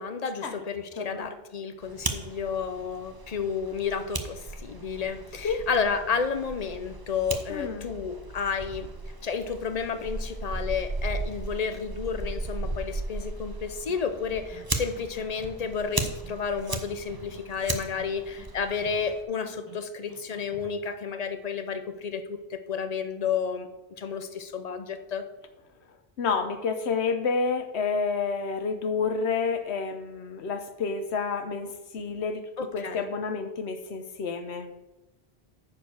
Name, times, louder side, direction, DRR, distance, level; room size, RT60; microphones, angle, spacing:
voice 1, 0.0-8.9 9.2-23.7 24.0-25.2 32.6-33.1, left 6 dB, 40° left, 9 dB, 0.8 m, -31 dB
voice 2, 1.0-1.3 5.4-5.7 7.5-7.9 26.2-34.7, left 5 dB, 80° left, 8 dB, 1.2 m, -29 dB
Fire, 1.8-19.2, right 2 dB, 25° right, 0.7 m, -36 dB
sound 1, 13.9-14.0 14.3-14.6 15.0-15.7 16.0-16.4 16.7-17.4 17.7-18.1 18.4-19.1 19.5-19.8 20.1-20.7, right 1 dB, 15° left, 2.4 m, -49 dB
9.7 x 4.7 x 6.3 m, 1.1 s
omnidirectional pair, 1.1 m